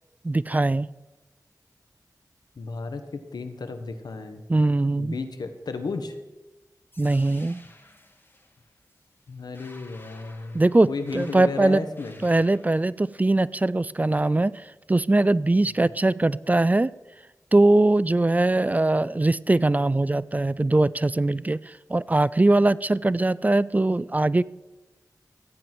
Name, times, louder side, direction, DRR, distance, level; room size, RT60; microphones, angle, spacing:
voice 1, 0.2-0.9 4.5-5.2 7.0-7.6 10.5-11.8 12.2-16.9 17.5-24.4, right 2 dB, 25° right, 20 dB, 0.4 m, -21 dB
voice 2, 2.6-4.4 5.0-6.2 9.3-10.6 10.9-12.2, left 4 dB, 85° left, 8 dB, 1.2 m, -33 dB
sound 1, 6.9-12.9, left 2 dB, 30° left, 2.2 m, -52 dB
14.5 x 9.2 x 6.1 m, 1.1 s
wide cardioid pair, 55°, 7 cm